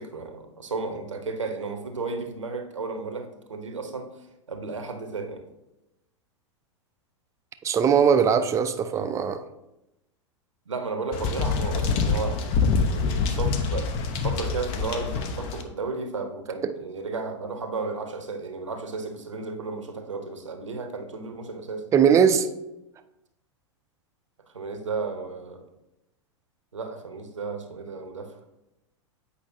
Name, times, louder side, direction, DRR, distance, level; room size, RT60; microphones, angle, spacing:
voice 1, 0.0-4.2 4.5-5.4 10.7-21.9 24.5-25.7 26.7-28.4, right 4 dB, 80° right, 6 dB, 0.9 m, -34 dB
voice 2, 7.6-9.4 16.6-16.7 21.9-22.5, right 7 dB, 20° right, 10 dB, 0.4 m, -20 dB
sound 1, 11.1-15.6, left 5 dB, 40° left, 0.7 m, -25 dB
8.4 x 5.1 x 2.7 m, 0.92 s
figure-of-eight pair, 95°, 16 cm